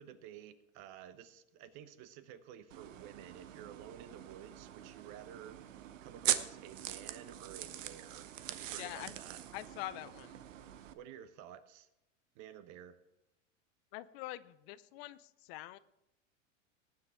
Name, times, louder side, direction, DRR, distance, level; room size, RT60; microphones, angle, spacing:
voice 1, 0.0-9.4 10.9-11.9 12.3-13.0, right 10 dB, 50° right, 1.1 m, -52 dB
sound 1, 2.7-10.9, right 11 dB, 85° right, 0.9 m, -41 dB
voice 2, 8.8-9.1 9.5-10.4 13.9-15.8, left 16 dB, 55° left, 0.6 m, -45 dB
19.0 x 7.7 x 3.7 m
hypercardioid pair, 110°, 37 cm